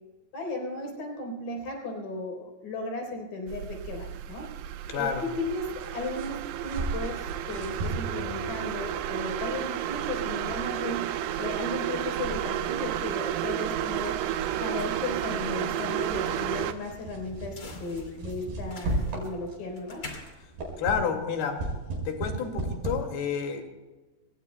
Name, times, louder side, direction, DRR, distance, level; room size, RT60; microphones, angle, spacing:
voice 1, 0.3-4.5 4.9-14.2 14.6-20.1, left 2 dB, 55° left, 3 dB, 5.4 m, -35 dB
sound 1, 3.5-16.7, right 11 dB, 90° right, 2.8 m, -32 dB
voice 2, 4.9-5.3 20.8-21.7 22.1-23.7, left 7 dB, 75° left, 3 dB, 4.0 m, -30 dB
sound 2, 5.8-19.8 20.2-23.0, right 2 dB, 65° right, 6.8 m, -37 dB
sound 3, 13.0-21.6, left 3 dB, 30° left, 2.4 m, -49 dB
25.5 x 21.0 x 2.2 m, 1.2 s
omnidirectional pair, 4.7 m